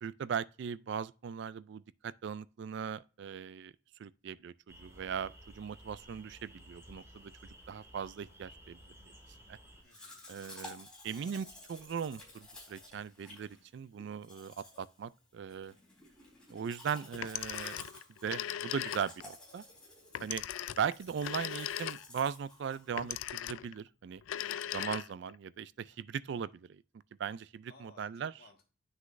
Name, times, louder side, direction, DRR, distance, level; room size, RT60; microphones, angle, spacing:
voice 1, 0.0-3.7 4.0-8.8 9.5-9.6 10.3-15.7 16.5-17.9 18.2-19.6 20.2-20.4 20.8-24.2 24.7-26.8 27.2-28.3, right 7 dB, 65° right, 0.3 m, -39 dB
sound 1, 4.7-9.8, equal, 15° right, 2.3 m, -55 dB
voice 2, 9.8-10.3 24.3-24.7 27.7-28.7, left 3 dB, 55° left, 1.5 m, -61 dB
Domestic sounds home sounds, 9.9-23.3, left 2 dB, 5° left, 3.8 m, -53 dB
Telephone, 17.1-19.3 20.1-22.3 23.0-23.8 24.2-25.4, left 11 dB, 90° left, 0.3 m, -39 dB
9.8 x 6.2 x 2.5 m
head